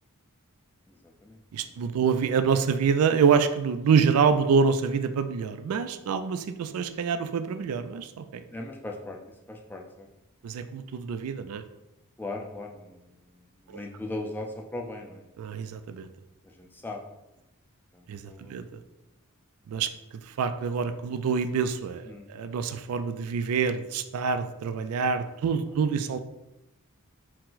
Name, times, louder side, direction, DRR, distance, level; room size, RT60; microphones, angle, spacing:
voice 1, 0.9-1.4 8.5-9.2 9.5-10.1 12.2-13.2 13.6-15.2 16.4-17.0 17.9-18.6 22.1-22.3, left 2 dB, 10° left, 1 dB, 0.4 m, -38 dB
voice 2, 1.5-8.4 10.4-11.6 15.4-16.1 18.1-18.2 18.5-18.6 19.7-19.9 20.3-26.2, right 6 dB, 75° right, 10 dB, 0.3 m, -26 dB
4.5 x 2.1 x 3.9 m, 0.92 s
head